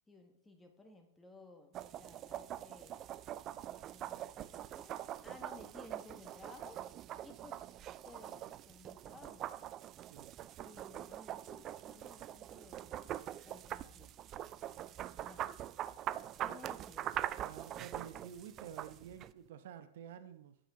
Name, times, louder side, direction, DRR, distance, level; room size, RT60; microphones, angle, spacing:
voice 1, 0.1-3.1 3.9-6.8 7.2-7.7 8.1-9.5 10.6-13.0 13.4-14.3 15.3-15.5 16.4-17.2, left 3 dB, 10° left, 4 dB, 1.6 m, -57 dB
sound 1, 1.7-19.3, right 12 dB, 35° right, 0.4 m, -44 dB
voice 2, 17.4-20.6, right 9 dB, 70° right, 10 dB, 0.9 m, -50 dB
9.0 x 8.6 x 3.8 m, 0.72 s
hypercardioid pair, 125°, 0 cm